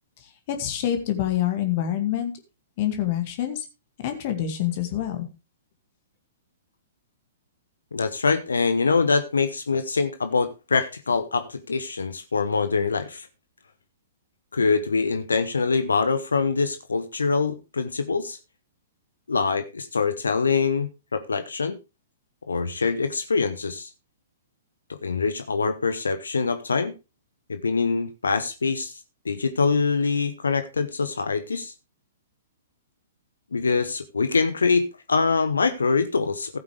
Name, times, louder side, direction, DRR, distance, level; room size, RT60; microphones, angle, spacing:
voice 1, 0.5-2.3 2.8-3.6 4.0-5.3, left 11 dB, 40° left, 2.1 m, -26 dB
voice 2, 7.9-13.3 14.5-18.4 19.3-21.8 22.5-23.9 24.9-26.9 27.5-29.0 29.2-31.7 33.5-36.6, left 4 dB, 70° left, 1.0 m, -24 dB
15.5 x 8.6 x 3.3 m
figure-of-eight pair, 110°, 0 cm